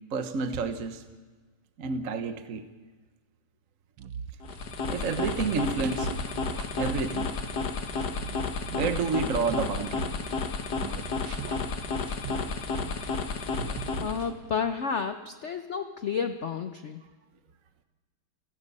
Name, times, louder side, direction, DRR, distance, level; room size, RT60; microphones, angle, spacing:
voice 1, 0.1-1.0 1.8-2.6 4.9-6.1 6.8-7.3 8.7-10.1, right 5 dB, 50° right, 8 dB, 1.2 m, -29 dB
sound 1, 4.0-10.5 10.8-13.3 13.6-14.6, right 7 dB, 80° right, 1.8 m, -41 dB
sound 2, 4.4-14.3, left 4 dB, 50° left, 1.8 m, -32 dB
voice 2, 14.0-17.0, left 6 dB, 75° left, 8 dB, 0.6 m, -31 dB
29.0 x 17.0 x 5.5 m, 1.3 s
omnidirectional pair, 2.3 m